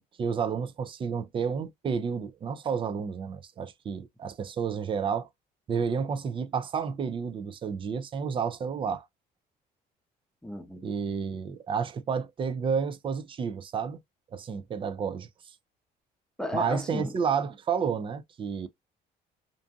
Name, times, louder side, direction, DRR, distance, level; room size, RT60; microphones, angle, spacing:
voice 1, 0.0-5.3 5.7-9.1 10.8-14.0 14.3-15.3 16.5-18.7, right 6 dB, 30° right, 0.4 m, -30 dB
voice 2, 10.4-10.9 16.4-17.1, left 1 dB, 5° left, 0.7 m, -34 dB
2.6 x 2.5 x 2.3 m
cardioid pair, 110°, 17 cm